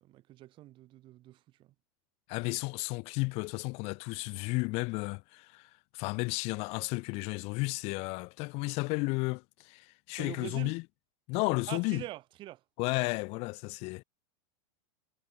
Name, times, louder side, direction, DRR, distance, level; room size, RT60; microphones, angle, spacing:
voice 1, 0.0-1.4 10.1-10.8 11.7-12.6, right 15 dB, 35° right, 7.4 m, -44 dB
voice 2, 2.3-10.8 11.3-12.0 12.8-14.0, left 27 dB, 45° left, 6.7 m, -33 dB
supercardioid pair, 150°, 14 cm